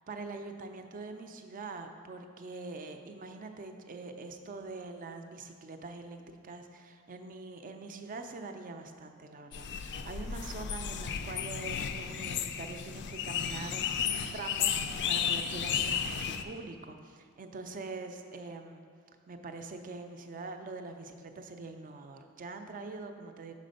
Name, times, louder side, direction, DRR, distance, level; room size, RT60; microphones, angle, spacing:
voice 1, 0.1-18.8 19.3-23.5, right 3 dB, 40° right, 6 dB, 0.4 m, -44 dB
sound 1, 9.5-16.4, left 8 dB, 55° left, 0.3 m, -33 dB
6.0 x 4.2 x 5.2 m, 2.1 s
head